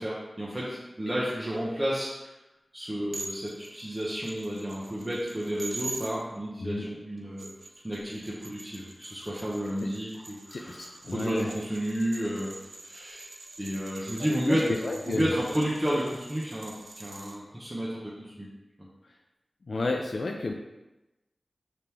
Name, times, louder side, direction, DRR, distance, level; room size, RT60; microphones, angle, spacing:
voice 1, 0.0-2.3 2.7-7.5 7.8-12.5 12.8-13.3 13.6-14.7 15.0-18.5, equal, 20° right, -7 dB, 0.8 m, -31 dB
sound 1, 3.1-6.1 7.2-17.4, right 2 dB, 75° right, 0.5 m, -44 dB
voice 2, 10.5-11.5 14.5-15.3 19.7-20.5, left 3 dB, 70° left, 1 dB, 0.4 m, -31 dB
5.0 x 3.4 x 2.9 m, 1.0 s
wide cardioid pair, 80°, 0 cm